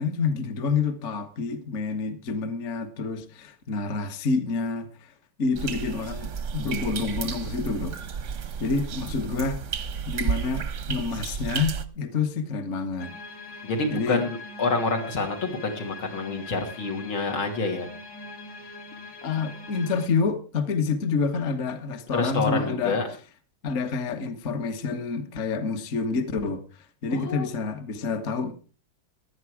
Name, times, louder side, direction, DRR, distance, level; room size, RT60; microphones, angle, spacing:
voice 1, 0.0-5.1 5.4-8.0 8.6-9.6 10.1-13.1 13.9-14.2 19.2-23.0 23.6-28.5, left 4 dB, 40° left, 1.3 m, -28 dB
sound 1, 5.5-11.8, right 6 dB, 55° right, 0.9 m, -32 dB
sound 2, 13.0-20.1, left 3 dB, 55° left, 2.6 m, -42 dB
voice 2, 13.6-17.9 22.1-23.0 27.1-27.5, left 3 dB, 80° left, 3.6 m, -27 dB
15.5 x 10.5 x 4.8 m
omnidirectional pair, 2.2 m